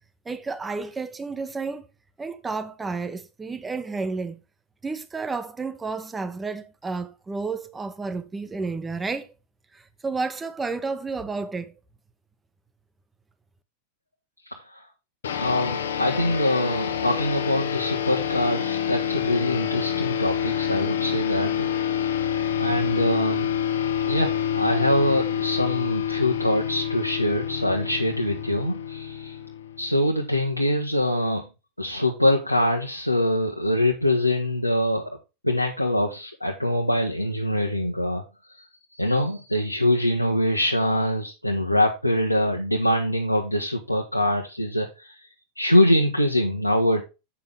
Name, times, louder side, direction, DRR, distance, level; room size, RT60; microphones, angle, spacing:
voice 1, 0.3-1.9 2.2-4.4 4.8-9.3 10.0-11.7, right 4 dB, 15° right, 1.0 m, -31 dB
voice 2, 14.5-14.8 15.4-22.1 22.6-23.5 24.0-29.4 29.8-31.4 31.8-35.0 35.4-38.2 39.0-45.2 45.6-47.0, left 1 dB, 85° left, 1.2 m, -24 dB
sound 1, 15.2-30.0, left 9 dB, 65° left, 1.2 m, -27 dB
8.5 x 6.8 x 3.5 m
figure-of-eight pair, 90°, 0 cm